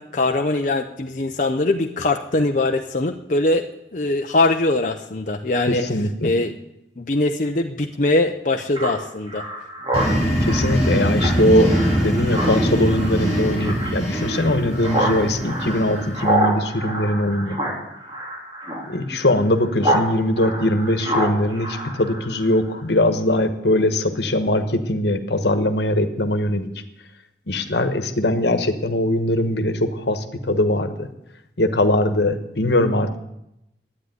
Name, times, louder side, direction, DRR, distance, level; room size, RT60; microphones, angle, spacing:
voice 1, 0.0-3.6 3.9-5.8 6.2-6.5 7.0-9.5, left 2 dB, 45° left, 3 dB, 0.7 m, -22 dB
voice 2, 5.7-6.3 10.4-17.6 18.9-26.7 27.5-31.1 31.6-33.2, left 1 dB, 70° left, 9 dB, 1.4 m, -21 dB
Speech synthesizer, 8.7-20.1 20.4-22.6, right 1 dB, 25° right, 3.3 m, -27 dB
sound 1, 9.9-16.4, equal, 15° left, 5.8 m, -23 dB
12.0 x 9.8 x 9.6 m, 0.85 s
head